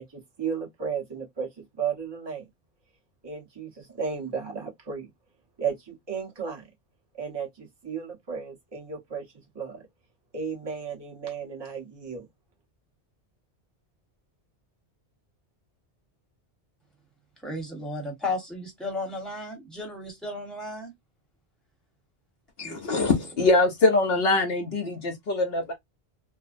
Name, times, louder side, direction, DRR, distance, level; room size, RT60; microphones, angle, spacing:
voice 1, 0.0-2.5 3.2-5.1 5.6-6.6 7.2-9.2 9.5-9.8 10.3-12.3, right 6 dB, 25° right, 0.9 m, -34 dB
voice 2, 17.4-20.9 22.6-22.8, left 2 dB, ahead, 0.9 m, -34 dB
voice 3, 22.6-25.7, left 3 dB, 65° left, 0.8 m, -23 dB
2.5 x 2.1 x 2.4 m
omnidirectional pair, 1.1 m